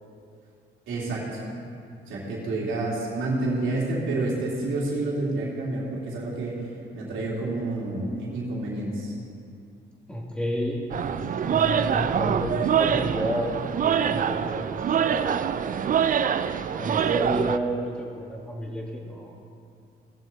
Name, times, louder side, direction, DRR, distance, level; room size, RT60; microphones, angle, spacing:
voice 1, 0.9-1.4 2.1-6.7 6.9-9.1, right 2 dB, 80° right, -5 dB, 3.1 m, -29 dB
voice 2, 10.1-15.8 16.8-19.3, equal, 5° left, -3 dB, 2.7 m, -31 dB
sound 1, 10.9-17.6, right 8 dB, 45° right, 0.5 m, -25 dB
18.5 x 7.3 x 4.4 m, 2.4 s
cardioid pair, 90°, 20 cm